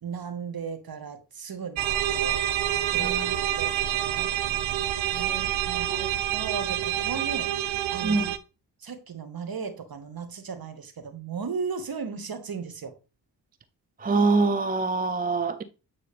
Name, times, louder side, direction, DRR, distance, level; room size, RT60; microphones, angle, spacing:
voice 1, 0.0-1.9 2.1-2.4 2.9-3.1 3.6-4.3 5.1-5.9 6.3-7.5 7.9-8.2 8.8-12.9, right 5 dB, 50° right, 1.8 m, -36 dB
sound 1, 1.8-8.4, right 12 dB, 70° right, 0.7 m, -27 dB
voice 2, 3.0-3.3 5.3-5.4 5.8-6.1 8.0-8.3 14.0-15.6, right 3 dB, 20° right, 0.6 m, -25 dB
8.6 x 3.9 x 3.4 m
supercardioid pair, 45°, 47 cm